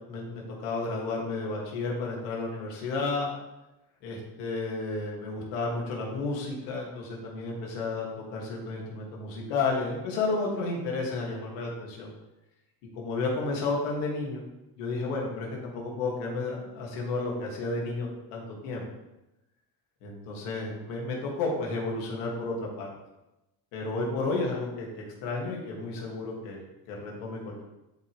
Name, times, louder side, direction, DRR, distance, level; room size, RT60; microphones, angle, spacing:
voice 1, 0.1-3.3 4.0-12.1 12.9-14.4 14.8-18.9 20.0-22.9 23.7-24.9 25.2-27.6, left 3 dB, 85° left, -2 dB, 2.4 m, -32 dB
11.5 x 5.4 x 3.4 m, 0.96 s
supercardioid pair, 100°, 43 cm